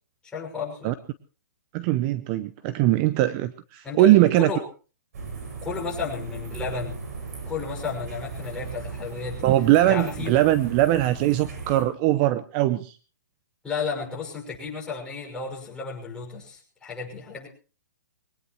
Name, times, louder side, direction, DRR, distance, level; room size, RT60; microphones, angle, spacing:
voice 1, 0.2-0.9 3.8-4.6 5.6-7.0 7.4-9.5 9.9-10.3 13.6-17.5, left 5 dB, 10° left, -3 dB, 6.0 m, -33 dB
voice 2, 1.7-4.5 9.4-13.0, right 15 dB, 30° right, 14 dB, 0.7 m, -21 dB
sound 1, 5.1-11.8, right 4 dB, 60° right, 7.0 m, -37 dB
22.5 x 18.5 x 3.1 m, 0.35 s
hypercardioid pair, 145°, 10 cm